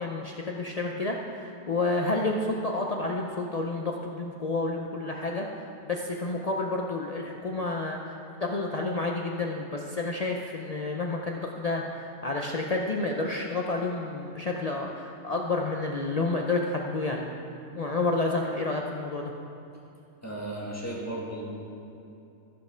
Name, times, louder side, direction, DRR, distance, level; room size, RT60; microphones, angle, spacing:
voice 1, 0.0-17.3 17.7-19.3, left 2 dB, 80° left, 0 dB, 0.3 m, -30 dB
voice 2, 20.2-21.4, right 1 dB, 10° left, -5 dB, 1.8 m, -35 dB
14.5 x 5.4 x 5.0 m, 2.7 s
omnidirectional pair, 1.5 m